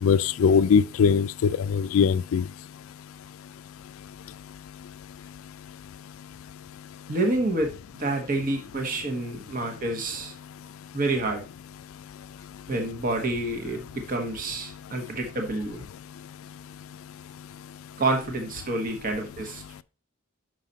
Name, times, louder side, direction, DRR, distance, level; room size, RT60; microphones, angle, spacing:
voice 1, 0.0-2.4, left 6 dB, 70° left, 0.3 m, -21 dB
voice 2, 7.1-10.3 10.9-11.4 12.7-15.8 18.0-19.8, right 2 dB, 40° right, 1.0 m, -28 dB
6.4 x 5.6 x 3.9 m
head